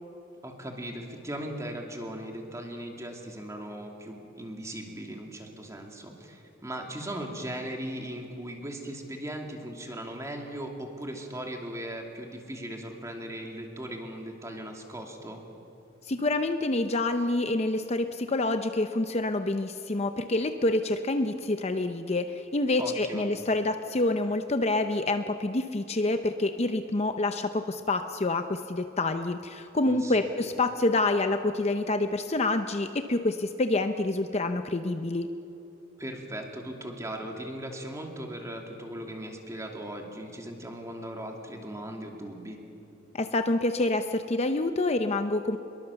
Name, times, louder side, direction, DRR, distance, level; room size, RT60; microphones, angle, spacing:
voice 1, 0.4-15.4 22.8-23.3 29.8-30.3 36.0-42.6, right 1 dB, 15° right, 2 dB, 2.6 m, -38 dB
voice 2, 16.1-35.3 43.1-45.6, left 2 dB, 35° left, 8 dB, 0.7 m, -27 dB
25.0 x 22.0 x 7.0 m, 2.9 s
head